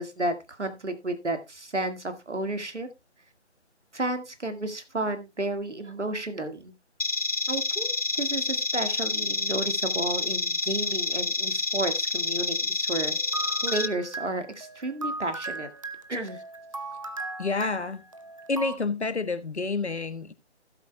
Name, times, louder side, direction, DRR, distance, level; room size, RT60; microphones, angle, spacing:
voice 1, 0.0-2.9 3.9-6.7 7.5-13.2 13.6-15.7 16.1-16.4, right 2 dB, 80° right, 1.9 m, -32 dB
sound 1, 7.0-13.9, left 3 dB, 35° left, 0.6 m, -28 dB
sound 2, 12.9-18.8, right 3 dB, 30° right, 0.6 m, -37 dB
voice 2, 17.4-18.0 18.5-20.3, left 4 dB, 70° left, 1.4 m, -29 dB
16.5 x 8.0 x 2.2 m
figure-of-eight pair, 155°, 35 cm